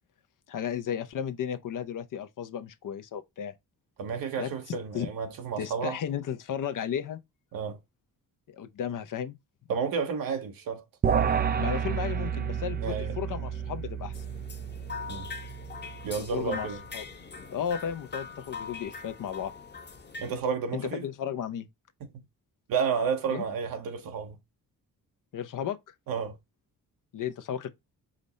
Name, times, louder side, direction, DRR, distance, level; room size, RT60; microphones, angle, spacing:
voice 1, 0.5-3.5 4.4-5.1 5.6-7.2 8.5-9.4 11.6-14.2 16.2-16.7 16.9-17.0 17.5-19.5 20.7-21.7 23.3-23.4 25.3-25.9 27.1-27.7, left 8 dB, 65° left, 0.7 m, -34 dB
voice 2, 4.0-6.0 7.5-7.8 9.7-10.8 12.8-13.1 15.1-15.3 16.0-16.8 20.2-21.0 22.7-24.4 26.1-26.4, right 6 dB, 85° right, 0.9 m, -31 dB
sound 1, 11.0-16.5, right 7 dB, 30° right, 0.4 m, -30 dB
sound 2, 14.1-20.4, left 5 dB, 30° left, 1.0 m, -42 dB
5.1 x 2.1 x 3.9 m
cardioid pair, 90°, 34 cm